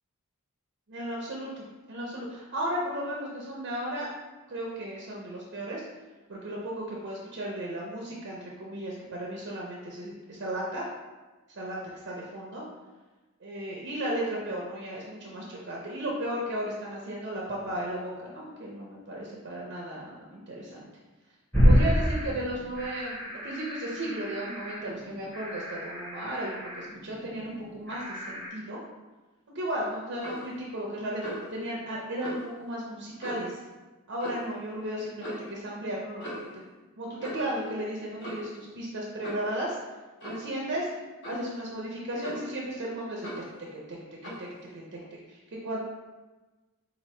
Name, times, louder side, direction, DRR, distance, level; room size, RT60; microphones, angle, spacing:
voice 1, 0.9-4.1 4.5-5.9 6.3-10.9 11.6-11.8 12.0-12.6 13.4-20.9 21.6-28.8 29.5-33.6 34.1-36.6 37.0-39.8 40.2-40.9 41.2-43.4 44.2-45.8, right 1 dB, 55° right, -3 dB, 0.6 m, -35 dB
sound 1, 21.5-28.5, equal, 5° left, 1.0 m, -28 dB
Clock, 30.2-30.5 31.2-31.5 32.2-32.4 33.2-33.5 34.2-34.5 35.2-35.5 36.2-36.5 37.2-37.5 38.2-38.5 39.2-39.5 40.2-40.5 41.2-41.5 42.2-42.6 43.2-43.5 44.2-44.5, equal, 50° left, 1.4 m, -38 dB
3.9 x 2.8 x 3.1 m, 1.2 s
head